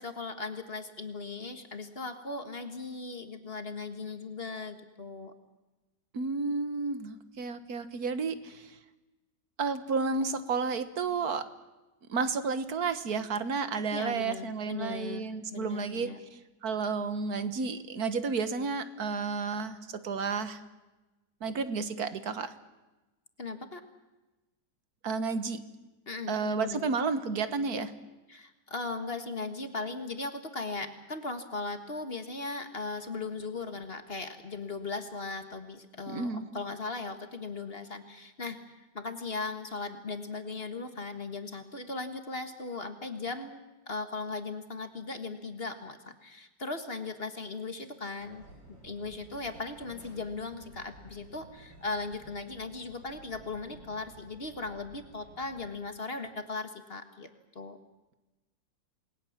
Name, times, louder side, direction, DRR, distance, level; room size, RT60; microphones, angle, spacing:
voice 1, 0.0-5.3 13.9-16.2 23.4-23.8 26.1-26.9 28.3-43.6 43.9-48.4 48.8-57.3 57.5-57.8, left 3 dB, 35° left, 8 dB, 1.8 m, -38 dB
voice 2, 6.1-8.7 9.6-11.5 12.1-16.1 16.6-20.6 21.4-22.5 25.0-25.6 26.3-27.9 36.1-36.5, right 4 dB, 55° right, 11 dB, 1.8 m, -31 dB
sound 1, 48.2-55.7, right 1 dB, 90° right, 5.8 m, -54 dB
28.5 x 21.0 x 7.3 m, 1.1 s
omnidirectional pair, 2.0 m